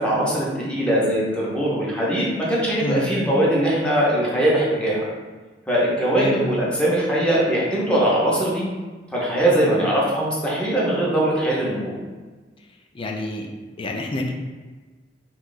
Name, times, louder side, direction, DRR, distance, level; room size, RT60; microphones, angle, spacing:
voice 1, 0.0-5.0 5.7-8.6 9.1-12.0, right 1 dB, 5° left, -6 dB, 0.7 m, -21 dB
voice 2, 12.9-13.5 13.8-14.3, left 1 dB, 30° left, 2 dB, 0.4 m, -27 dB
2.8 x 2.3 x 3.9 m, 1.3 s
head